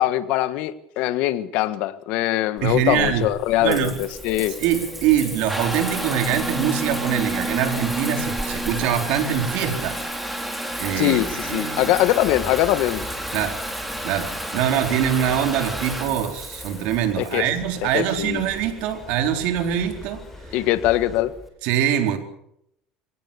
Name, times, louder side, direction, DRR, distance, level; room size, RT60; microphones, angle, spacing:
voice 1, 0.0-4.5 11.0-13.1 17.2-17.5 17.8-18.4 20.5-21.3, left 15 dB, 65° left, 13 dB, 1.5 m, -22 dB
Water tap faucet / Bathtub (filling or washing) / Trickle dribble, 2.6-21.5, right 1 dB, 5° right, 3.7 m, -31 dB
voice 2, 2.6-3.2 3.6-4.0 4.6-10.0 10.4-12.0 13.3-13.5 14.0-20.2 21.6-22.2, right 9 dB, 70° right, 6 dB, 4.0 m, -23 dB
sound 1, 11.2-21.2, left 3 dB, 15° left, 5.4 m, -42 dB
23.5 x 18.5 x 7.0 m, 0.75 s
cardioid pair, 135°, 2 cm